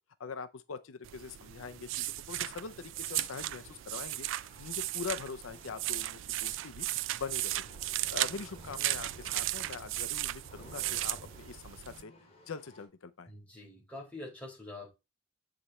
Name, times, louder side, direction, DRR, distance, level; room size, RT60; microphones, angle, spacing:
voice 1, 0.2-6.9 7.1-7.6 8.1-12.1 12.5-13.3, left 5 dB, 85° left, 0.6 m, -43 dB
sound 1, 1.0-12.0, right 16 dB, 65° right, 0.3 m, -36 dB
sound 2, 2.4-12.8, left 1 dB, 30° left, 2.1 m, -56 dB
voice 2, 13.3-14.9, left 2 dB, 5° left, 4.3 m, -45 dB
7.8 x 5.0 x 4.2 m
head